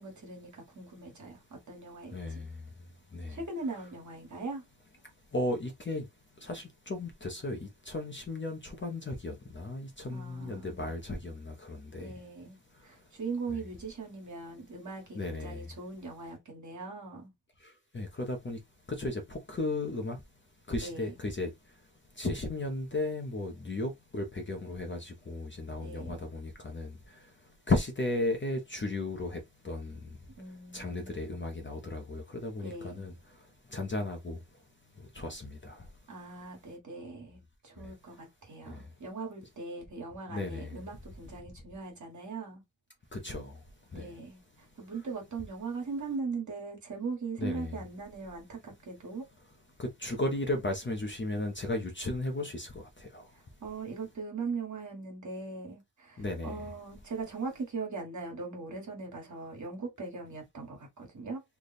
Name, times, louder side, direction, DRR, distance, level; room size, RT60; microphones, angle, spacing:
voice 1, 0.0-1.4 1.7-2.4 3.3-4.6 10.1-10.9 12.0-12.6 12.8-17.3 20.8-21.2 25.8-26.3 30.3-31.2 32.6-33.1 36.1-42.6 43.9-44.4 44.8-49.2 53.6-61.4, right 4 dB, 40° right, 1.6 m, -40 dB
voice 2, 2.1-2.5 3.1-3.4 5.3-6.0 6.4-7.6 7.9-12.1 15.2-15.6 17.9-18.6 19.0-20.2 20.7-21.5 22.2-26.9 27.7-29.4 29.6-30.0 30.7-33.1 33.7-34.4 35.2-35.7 40.3-40.8 43.1-43.5 43.9-44.1 47.4-47.8 49.8-52.7 53.1-53.2 56.2-56.6, left 2 dB, 25° left, 0.7 m, -34 dB
3.3 x 2.3 x 4.1 m
wide cardioid pair, 155°, 44 cm